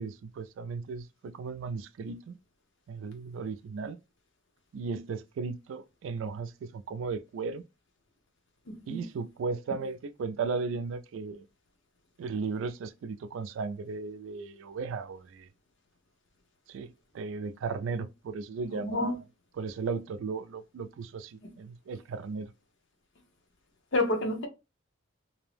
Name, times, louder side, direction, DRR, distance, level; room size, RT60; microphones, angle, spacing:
voice 1, 0.0-2.4 2.9-4.0 4.7-7.6 8.9-11.5 12.2-15.5 16.7-19.1 19.6-22.5, right 4 dB, 70° right, 0.3 m, -36 dB
voice 2, 8.7-9.0 18.7-19.1 21.4-21.5 23.9-24.5, left 2 dB, 65° left, 0.8 m, -29 dB
2.6 x 2.0 x 3.1 m
head